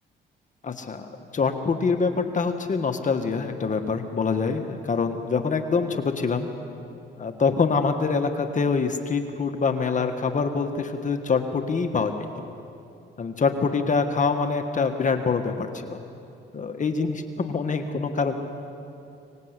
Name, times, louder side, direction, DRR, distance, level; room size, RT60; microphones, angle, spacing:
voice 1, 0.6-6.5 7.2-12.3 13.2-16.0 16.5-18.3, left 4 dB, 40° left, 6 dB, 1.6 m, -25 dB
25.0 x 19.5 x 8.3 m, 2.7 s
cardioid pair, 90°, 20 cm